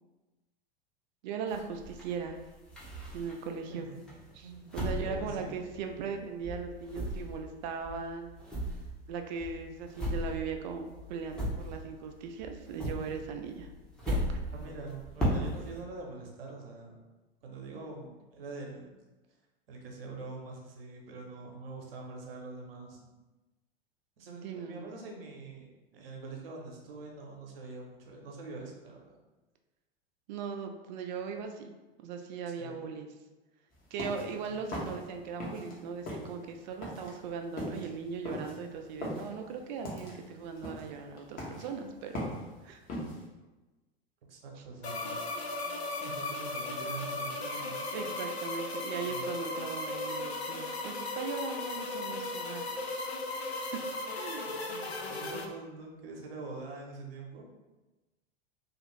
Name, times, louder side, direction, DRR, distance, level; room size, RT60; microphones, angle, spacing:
voice 1, 1.2-2.4 3.1-3.9 4.4-8.4 9.1-13.7 14.1-14.2 24.4-24.9 30.3-31.7 32.0-33.1 33.9-42.3 42.6-42.8 47.6-52.7 53.5-53.8 54.1-54.5, right 5 dB, 50° right, 5 dB, 0.4 m, -39 dB
sound 1, 1.5-3.6 4.1-6.2 6.4-12.1 12.4-15.8, equal, 5° left, 0.7 m, -36 dB
voice 2, 5.1-5.5 14.5-17.0 17.4-18.9 19.7-23.0 24.2-25.7 25.9-29.1 32.6-32.8 44.3-45.2 45.9-48.0 49.1-49.2 54.7-57.4, right 3 dB, 65° right, 0 dB, 0.8 m, -44 dB
sound 2, 33.7-35.8 36.0-43.2, left 1 dB, 30° left, 0.8 m, -39 dB
sound 3, 44.8-55.5, left 2 dB, 85° left, 0.5 m, -36 dB
2.4 x 2.4 x 3.1 m, 1.1 s
figure-of-eight pair, 85°, 31 cm